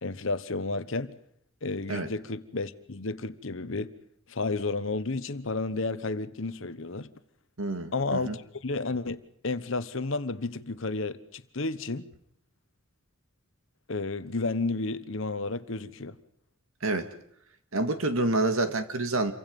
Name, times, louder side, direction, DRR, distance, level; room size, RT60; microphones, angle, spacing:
voice 1, 0.0-1.1 1.6-3.9 4.3-7.1 7.9-12.0 13.9-16.2, left 3 dB, 65° left, 1.1 m, -32 dB
voice 2, 7.6-8.4 16.8-17.1 17.7-19.3, right 2 dB, 75° right, 2.0 m, -28 dB
28.0 x 23.5 x 5.4 m
head